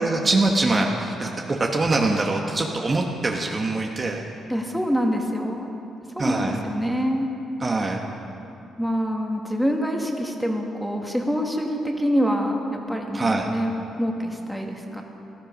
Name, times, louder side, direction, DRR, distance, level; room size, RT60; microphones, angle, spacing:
voice 1, 0.0-4.2 6.2-6.6 7.6-8.0 13.1-13.5, right 2 dB, 30° right, 1 dB, 1.3 m, -23 dB
voice 2, 4.5-5.7 6.2-7.3 8.8-13.7 14.0-15.0, equal, ahead, 1 dB, 2.0 m, -25 dB
18.5 x 13.0 x 5.3 m, 2.9 s
cardioid pair, 90°, 0 cm